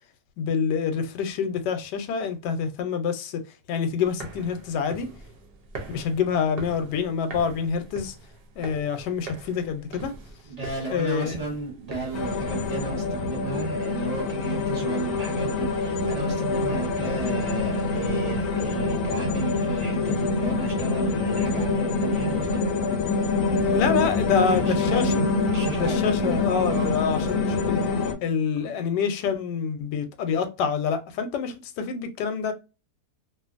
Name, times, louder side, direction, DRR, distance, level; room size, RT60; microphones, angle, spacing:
voice 1, 0.4-3.4 3.7-5.1 5.9-8.1 8.6-10.1 10.9-11.4 23.7-25.3 25.8-27.8 28.2-32.5, left 6 dB, 90° left, 1.2 m, -26 dB
sound 1, 4.0-12.8, right 3 dB, 55° right, 0.7 m, -42 dB
voice 2, 10.5-22.6 24.3-25.2 25.5-27.0, right 4 dB, 30° right, 0.9 m, -34 dB
sound 2, 12.1-28.1, left 3 dB, 65° left, 0.8 m, -25 dB
2.6 x 2.5 x 2.4 m
omnidirectional pair, 1.8 m